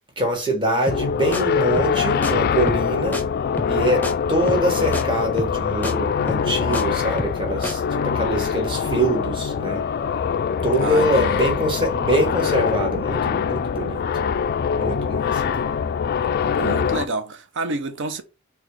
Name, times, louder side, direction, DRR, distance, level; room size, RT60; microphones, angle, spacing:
voice 1, 0.2-3.2 3.7-9.8 10.6-14.0 14.7-15.6, right 1 dB, 25° right, 1.4 m, -24 dB
sound 1, 0.9-17.1, left 6 dB, 45° left, 0.3 m, -23 dB
sound 2, 0.9-1.1 1.3-1.4 1.8-2.3 2.7-2.9 3.1-3.2 3.6-3.8 4.0-4.1 4.5-4.7 4.9-5.0 5.4-5.6 5.8-5.9 6.3-6.8 7.2-7.4 7.6-7.7, left 1 dB, 10° left, 0.7 m, -28 dB
voice 2, 10.8-11.5 16.5-18.2, right 3 dB, 60° right, 0.7 m, -29 dB
4.1 x 2.3 x 4.6 m
head